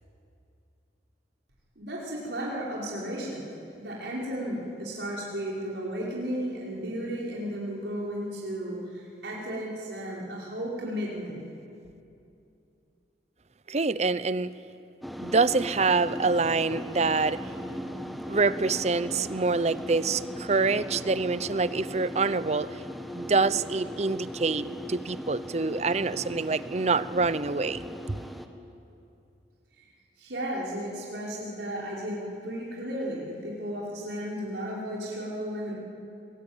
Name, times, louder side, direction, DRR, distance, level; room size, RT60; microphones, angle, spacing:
voice 1, 1.8-3.4 3.8-11.5 29.8-29.9 30.2-35.7, equal, 80° right, -5 dB, 5.3 m, -34 dB
voice 2, 13.7-14.5 15.2-17.4 18.3-22.8 23.1-27.8 28.1-28.2, right 4 dB, 40° right, 15 dB, 0.7 m, -26 dB
sound 1, 15.0-28.5, equal, ahead, 1.4 m, -38 dB
28.0 x 22.5 x 9.0 m, 2.6 s
head